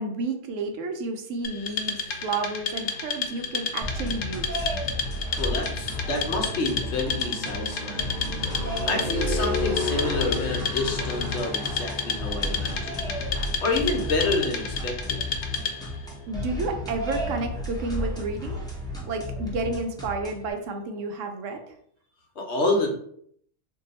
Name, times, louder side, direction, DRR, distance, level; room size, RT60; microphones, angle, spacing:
voice 1, 0.0-4.7 16.3-18.6 19.1-21.8, right 3 dB, 80° right, 5 dB, 1.0 m, -31 dB
Wood, 1.4-16.0, left 5 dB, 90° left, 1.0 m, -32 dB
sound 1, 1.5-17.0, left 2 dB, 40° right, 0.6 m, -36 dB
sound 2, 3.8-20.5, left 1 dB, 5° left, 0.4 m, -33 dB
voice 2, 5.4-8.1 8.4-13.1 13.6-15.2 22.4-22.9, left 2 dB, 65° left, 1 dB, 1.0 m, -28 dB
2.7 x 2.3 x 3.9 m, 0.65 s
omnidirectional pair, 1.3 m